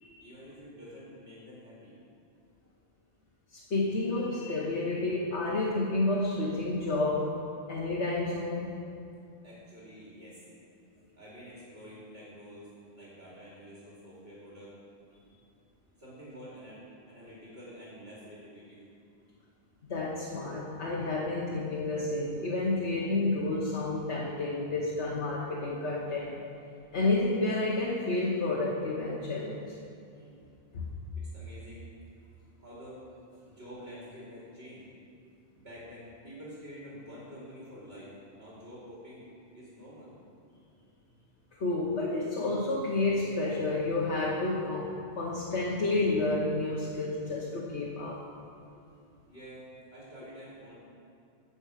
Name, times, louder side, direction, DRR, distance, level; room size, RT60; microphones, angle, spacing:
voice 1, 0.2-1.9 9.4-10.4 11.2-12.7 12.9-14.7 16.0-18.8 30.1-30.4 31.2-31.9 32.6-33.0 33.5-34.9 35.5-39.3 39.5-40.1 49.3-50.8, equal, 65° right, -8 dB, 2.8 m, -48 dB
voice 2, 3.5-7.4 7.7-8.9 19.8-26.4 26.9-29.7 30.7-30.9 41.6-48.2, left 2 dB, 85° left, -5 dB, 1.5 m, -30 dB
11.0 x 5.4 x 8.1 m, 2.4 s
omnidirectional pair, 1.1 m